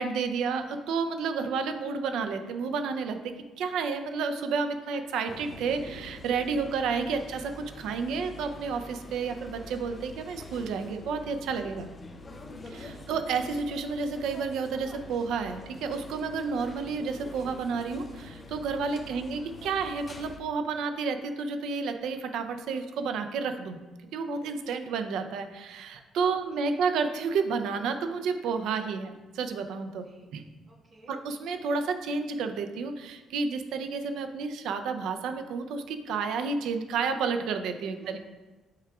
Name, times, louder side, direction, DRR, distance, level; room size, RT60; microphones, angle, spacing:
voice 1, 0.0-11.9 12.7-23.8 24.1-30.1 30.3-30.4 31.1-38.2, right 5 dB, 85° right, 7 dB, 0.5 m, -31 dB
sound 1, 5.3-20.4, left 2 dB, 25° left, 0.5 m, -45 dB
voice 2, 12.7-13.1 18.9-19.2 24.6-24.8 26.2-26.4 26.6-26.8 30.0-30.3 30.7-31.2 37.8-38.2, right 2 dB, 35° right, -3 dB, 1.4 m, -53 dB
8.4 x 4.8 x 2.4 m, 1.2 s
cardioid pair, 155°, 0 cm